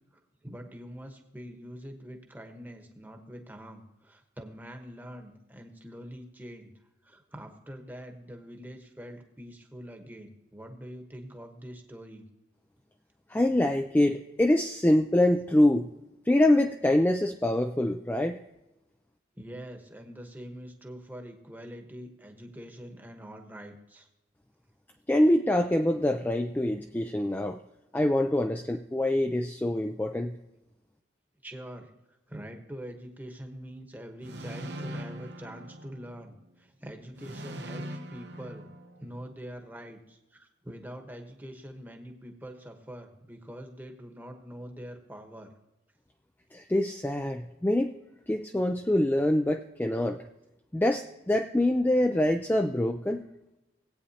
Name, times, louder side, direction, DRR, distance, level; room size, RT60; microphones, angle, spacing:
voice 1, 0.4-6.7 7.0-12.2 19.4-24.1 31.4-31.9 32.3-38.7 39.0-45.5, equal, 10° right, 4 dB, 1.1 m, -44 dB
voice 2, 13.3-15.9 16.3-18.4 25.1-27.6 27.9-30.4 46.5-47.9 48.3-50.2 50.7-53.2, left 1 dB, 10° left, 5 dB, 0.3 m, -25 dB
sound 1, 34.2-36.4 37.2-39.4, equal, 60° right, 0.9 m, -41 dB
18.5 x 8.7 x 2.8 m, 0.96 s
head